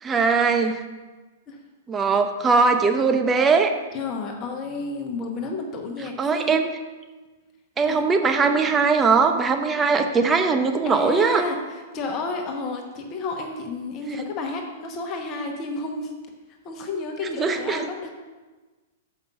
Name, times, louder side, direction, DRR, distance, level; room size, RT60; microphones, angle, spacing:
voice 1, 0.0-0.8 1.9-3.7 6.2-6.7 7.8-11.4 17.2-17.9, right 4 dB, 20° right, 6 dB, 0.7 m, -20 dB
voice 2, 3.9-6.6 7.8-8.0 10.8-16.1 16.6-18.1, left 3 dB, 35° left, 3 dB, 1.0 m, -31 dB
6.9 x 5.2 x 5.6 m, 1.3 s
hypercardioid pair, 110°, 0 cm